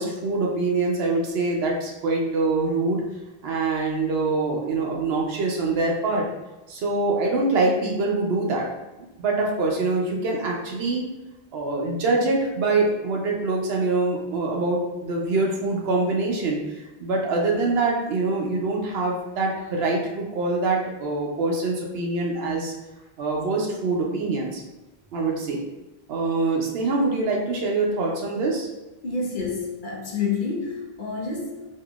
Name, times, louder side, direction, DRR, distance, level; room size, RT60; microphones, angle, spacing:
voice 1, 0.0-3.0 3.4-6.3 6.7-8.7 9.2-11.0 11.5-22.7 23.2-24.6 25.1-25.6 26.1-28.7, right 3 dB, 80° right, -2 dB, 0.8 m, -24 dB
voice 2, 29.0-31.7, left 4 dB, 55° left, -2 dB, 0.8 m, -28 dB
3.6 x 2.7 x 2.3 m, 1.0 s
omnidirectional pair, 1.0 m